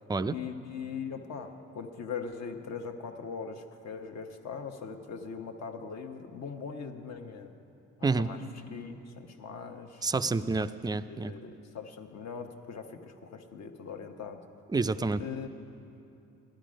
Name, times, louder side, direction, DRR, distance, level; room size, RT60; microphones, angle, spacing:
voice 1, 0.3-7.5 8.0-8.4 8.7-10.0 11.1-14.4 15.2-15.5, left 6 dB, 60° left, 6 dB, 1.0 m, -40 dB
voice 2, 10.0-11.3 14.7-15.2, right 3 dB, 15° right, 12 dB, 0.3 m, -28 dB
16.0 x 12.0 x 5.1 m, 2.8 s
cardioid pair, 90°, 30 cm